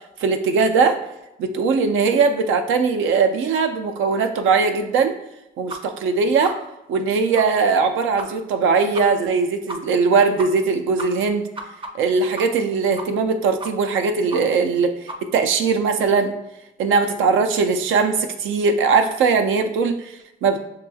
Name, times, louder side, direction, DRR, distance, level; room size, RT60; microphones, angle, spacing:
voice 1, 0.2-1.0 1.4-5.1 5.6-6.6 6.9-11.5 11.9-15.0 15.3-16.3 16.8-20.6, right 4 dB, 80° right, 6 dB, 0.5 m, -20 dB
sound 1, 5.7-5.8 6.1-6.2 6.4-6.5 6.9-7.0 7.3-7.4 7.7-7.8 8.2-8.3 8.5-8.6 8.9-9.0 9.3-9.4 9.7-9.8 10.1-10.2 10.4-10.7 11.0-12.7 13.0-13.3 13.6-14.0 14.3-14.4 14.7-14.8 15.1-15.2, right 2 dB, 25° right, 0.6 m, -33 dB
6.0 x 3.0 x 2.3 m, 0.91 s
cardioid pair, 90°, 20 cm